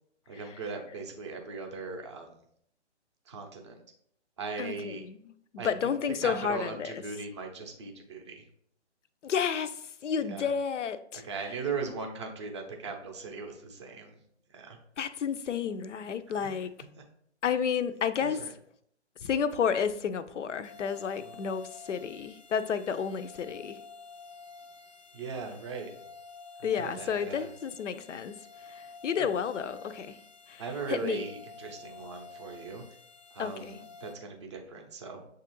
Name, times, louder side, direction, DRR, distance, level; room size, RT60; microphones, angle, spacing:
voice 1, 0.3-2.3 3.3-3.8 4.4-5.0 5.6-5.9 6.2-8.4 10.2-10.5 11.2-14.2 14.5-14.8 16.4-16.5 18.2-18.5 21.2-21.5 25.1-25.9 26.6-27.5 29.2-29.3 30.6-32.8 33.3-35.2, right 4 dB, 25° right, 0.4 m, -39 dB
voice 2, 4.6-5.2 5.6-6.9 9.2-11.2 15.0-16.7 17.4-18.4 19.2-23.8 26.6-28.3 28.7-30.2 30.5-30.6 30.9-31.2 33.4-33.8, left 7 dB, 90° left, 0.5 m, -31 dB
sound 1, 20.6-34.1, left 4 dB, 30° left, 0.5 m, -50 dB
6.8 x 2.4 x 3.0 m
hypercardioid pair, 145°, 35 cm